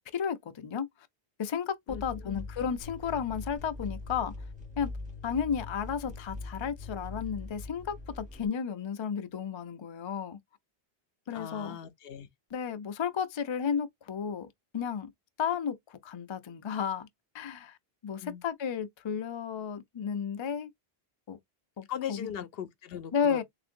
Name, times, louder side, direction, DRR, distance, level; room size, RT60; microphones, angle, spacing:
voice 1, 0.1-0.9 1.4-4.3 4.8-4.9 5.2-10.4 11.3-11.8 12.5-14.5 14.7-15.1 15.4-17.1 17.3-17.8 18.0-20.7 21.3-21.4 21.8-22.3 23.1-23.4, left 7 dB, 40° left, 0.4 m, -33 dB
voice 2, 1.9-2.4 11.3-12.3 18.1-18.4 21.9-23.4, left 9 dB, 70° left, 0.8 m, -39 dB
sound 1, 1.9-8.5, left 2 dB, 5° right, 1.4 m, -42 dB
3.5 x 2.5 x 2.5 m
omnidirectional pair, 1.0 m